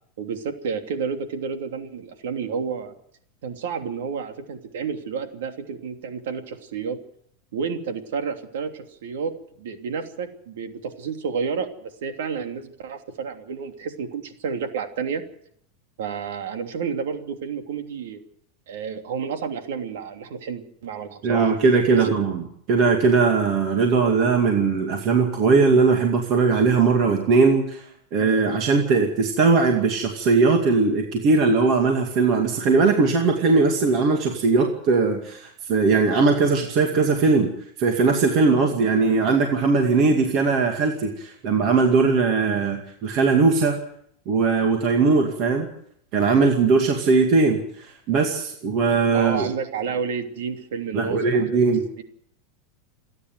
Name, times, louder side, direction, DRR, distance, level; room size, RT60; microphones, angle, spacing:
voice 1, 0.2-2.9 3.4-7.0 7.5-15.2 16.0-18.2 18.7-21.5 21.9-22.2 49.1-51.6 52.0-52.1, right 6 dB, 85° right, 6 dB, 3.0 m, -30 dB
voice 2, 21.2-22.4 22.7-27.8 28.1-37.5 37.8-43.8 44.3-45.7 46.1-49.5 50.9-51.8, right 4 dB, 35° right, 2 dB, 2.2 m, -19 dB
28.5 x 10.0 x 9.3 m, 0.68 s
supercardioid pair, 180°, 0 cm